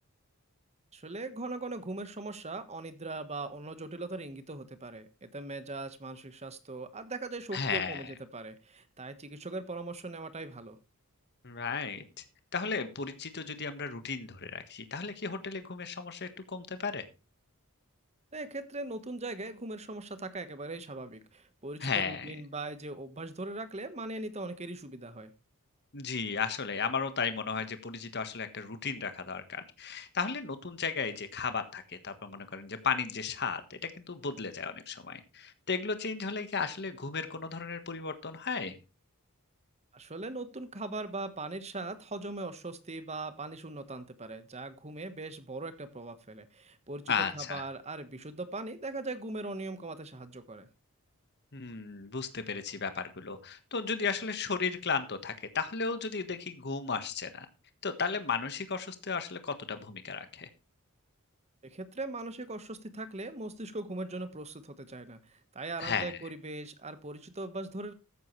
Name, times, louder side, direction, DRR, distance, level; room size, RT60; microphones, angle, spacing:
voice 1, 0.9-10.8 18.3-25.3 39.9-50.7 61.6-67.9, right 2 dB, 30° right, 11 dB, 1.3 m, -40 dB
voice 2, 7.5-8.0 11.4-12.2 12.5-17.0 21.8-22.3 25.9-38.8 47.1-47.6 51.5-57.5 57.8-60.5 65.8-66.2, left 5 dB, 50° left, 10 dB, 1.5 m, -34 dB
14.0 x 9.5 x 3.2 m, 0.29 s
head